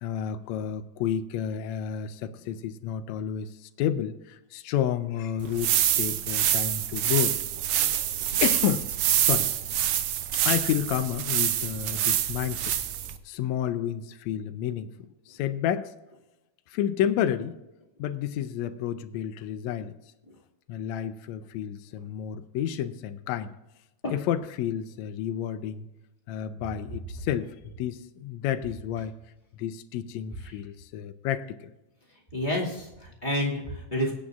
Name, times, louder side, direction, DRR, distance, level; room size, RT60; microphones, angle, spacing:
voice 1, 0.0-7.4 7.8-8.0 8.4-8.9 9.2-9.5 10.5-12.8 13.3-14.9 15.3-15.9 16.7-17.5 18.0-19.9 20.7-23.5 24.1-25.9 26.3-29.1 29.6-31.7, left 10 dB, 80° left, 9 dB, 1.9 m, -30 dB
sound 1, 5.4-13.2, right 11 dB, 80° right, 1.2 m, -26 dB
voice 2, 32.3-34.1, left 1 dB, 20° left, -4 dB, 2.1 m, -29 dB
22.0 x 8.4 x 2.5 m, 0.98 s
omnidirectional pair, 3.3 m